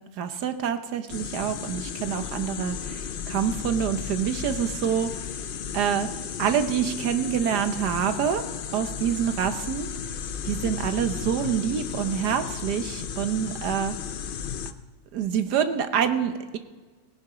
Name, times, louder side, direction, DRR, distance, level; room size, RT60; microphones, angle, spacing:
voice 1, 0.2-5.1 5.7-6.1 6.4-8.4 8.7-9.9 10.4-13.9 15.1-16.6, right 8 dB, 90° right, 9 dB, 1.5 m, -26 dB
sound 1, 1.1-14.7, left 7 dB, 85° left, 0.4 m, -34 dB
17.5 x 11.0 x 4.9 m, 1.3 s
omnidirectional pair, 1.7 m